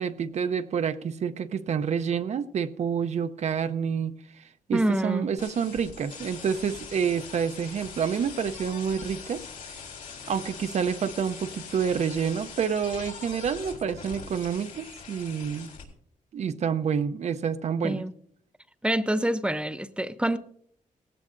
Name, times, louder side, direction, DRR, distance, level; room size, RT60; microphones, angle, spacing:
voice 1, 0.0-9.8 10.3-15.7 16.3-18.0, right 7 dB, 55° right, 0.6 m, -28 dB
voice 2, 4.7-5.3 17.8-18.1 18.8-20.4, right 1 dB, 5° right, 0.6 m, -26 dB
sound 1, 5.4-15.8, left 6 dB, 70° left, 3.7 m, -42 dB
18.0 x 16.0 x 2.5 m
wide cardioid pair, 130°, 14 cm